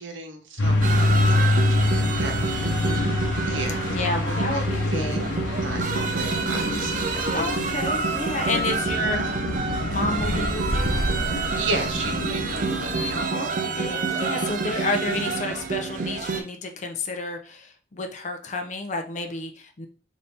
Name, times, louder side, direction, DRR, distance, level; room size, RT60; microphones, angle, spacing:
voice 1, 0.0-2.9 3.4-4.6 4.9-5.2 5.4-7.3 11.6-13.5, right 2 dB, 80° right, 4 dB, 0.9 m, -35 dB
sound 1, 0.6-13.2, left 2 dB, 90° left, 0.8 m, -26 dB
sound 2, 0.8-16.4, right 4 dB, 45° right, 0.5 m, -28 dB
voice 2, 2.5-3.1 3.9-5.3 7.3-11.0 13.3-19.9, left 2 dB, 40° left, 5 dB, 0.4 m, -31 dB
4.0 x 2.7 x 3.4 m, 0.41 s
head